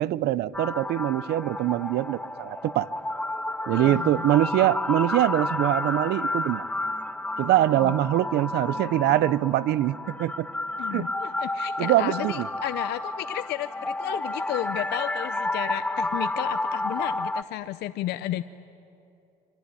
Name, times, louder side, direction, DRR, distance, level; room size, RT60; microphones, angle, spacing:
voice 1, 0.0-2.9 3.7-6.6 7.4-10.5 10.9-11.1 11.8-12.5, right 14 dB, 75° right, 19 dB, 0.7 m, -23 dB
sound 1, 0.5-17.4, left 2 dB, 10° left, 0.5 m, -31 dB
voice 2, 3.7-4.2 7.7-7.9 10.8-18.4, left 14 dB, 75° left, 11 dB, 0.7 m, -33 dB
24.5 x 24.0 x 9.8 m, 2.7 s
cardioid pair, 110°, 17 cm